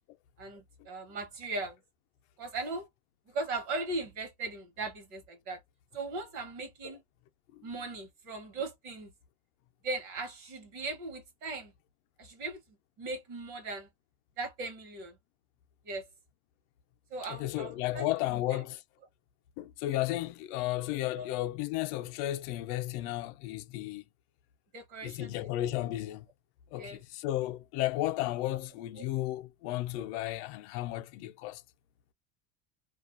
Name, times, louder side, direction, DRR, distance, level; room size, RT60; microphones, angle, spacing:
voice 1, 0.4-1.8 2.4-2.9 3.3-5.6 5.9-7.0 7.6-9.1 9.8-11.7 12.2-13.9 14.4-15.2 15.8-16.0 17.1-18.1 18.3-18.4 21.2-21.3 24.7-25.5 26.7-27.0 29.0-29.1, right 3 dB, 55° right, 0.9 m, -38 dB
voice 2, 17.2-18.8 19.6-24.0 25.0-26.3 26.7-31.6, left 15 dB, 85° left, 0.5 m, -33 dB
2.3 x 2.2 x 2.4 m
cardioid pair, 175°, 34 cm